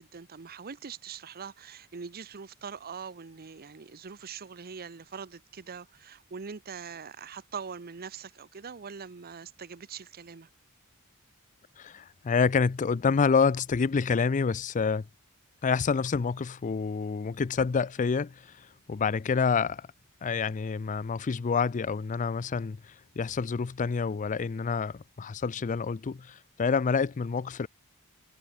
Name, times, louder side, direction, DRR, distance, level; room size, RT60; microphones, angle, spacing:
voice 1, 0.0-10.5, right 6 dB, 45° right, 0.7 m, -42 dB
voice 2, 11.8-15.0 15.6-19.9 20.2-27.7, left 5 dB, 35° left, 0.4 m, -28 dB
head